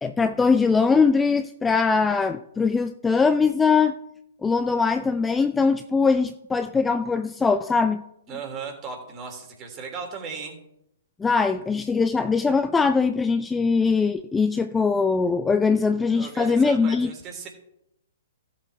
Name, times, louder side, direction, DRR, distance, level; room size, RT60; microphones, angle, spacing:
voice 1, 0.0-3.9 4.4-8.0 11.2-17.1, left 4 dB, 10° left, 10 dB, 0.4 m, -21 dB
voice 2, 8.3-10.6 16.1-17.5, right 5 dB, 30° right, 2 dB, 3.2 m, -36 dB
16.5 x 7.2 x 3.5 m, 0.80 s
figure-of-eight pair, 120°, 0 cm